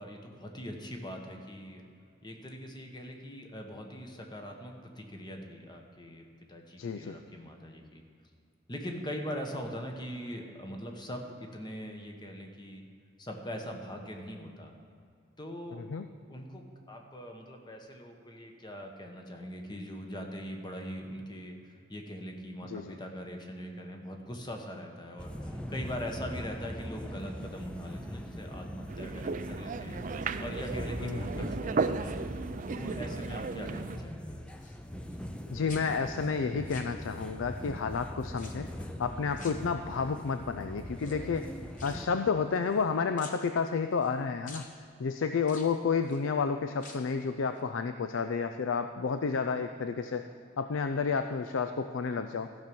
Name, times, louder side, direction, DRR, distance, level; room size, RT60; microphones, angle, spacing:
voice 1, 0.0-1.8 2.2-8.0 8.7-12.8 13.2-14.7 15.4-15.8 16.3-30.0 30.4-32.2 32.7-34.4, equal, 20° left, 3 dB, 1.2 m, -42 dB
voice 2, 6.8-7.2 15.8-16.0 22.7-22.9 31.0-31.6 35.5-38.7 39.0-41.5 41.8-44.6 45.0-50.2 50.6-52.5, left 5 dB, 75° left, 8 dB, 0.4 m, -31 dB
sound 1, 25.2-42.1, equal, 5° left, 0.6 m, -41 dB
sound 2, 28.9-34.0, right 4 dB, 40° right, 0.4 m, -35 dB
sound 3, 30.4-31.4 31.9-32.3 32.6-33.6 33.9-35.4 35.7-37.5 38.3-38.9 39.3-40.2 40.9-42.9 43.2-44.1 44.5-44.7 45.4-46.2 46.7-47.2 47.5-47.6, left 3 dB, 40° left, 1.1 m, -51 dB
14.5 x 6.1 x 6.9 m, 2.3 s
head